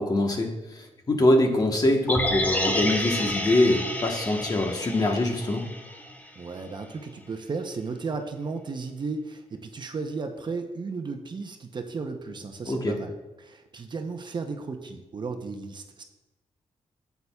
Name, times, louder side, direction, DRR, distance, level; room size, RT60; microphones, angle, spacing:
voice 1, 0.0-5.6 12.7-13.0, left 1 dB, 35° left, 3 dB, 1.2 m, -24 dB
sound 1, 2.1-6.3 6.6-6.7, left 1 dB, 15° left, 0.9 m, -30 dB
voice 2, 6.4-13.1 13.4-16.0, right 4 dB, 40° right, 5 dB, 0.8 m, -34 dB
9.5 x 8.2 x 2.3 m, 1.0 s
cardioid pair, 95°, 12 cm